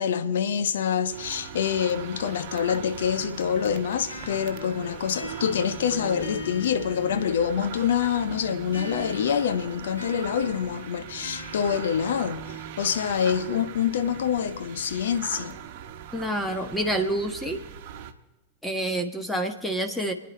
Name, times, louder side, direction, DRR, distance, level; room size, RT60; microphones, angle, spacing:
voice 1, 0.0-15.6, left 8 dB, 60° left, 1.0 m, -26 dB
sound 1, 1.1-18.1, right 9 dB, 45° right, 1.2 m, -40 dB
sound 2, 4.1-7.7 8.7-12.7, equal, 80° left, 4.8 m, -42 dB
voice 2, 16.1-17.6 18.6-20.1, right 1 dB, 5° left, 1.4 m, -28 dB
28.5 x 10.0 x 4.3 m
figure-of-eight pair, 90°, 0 cm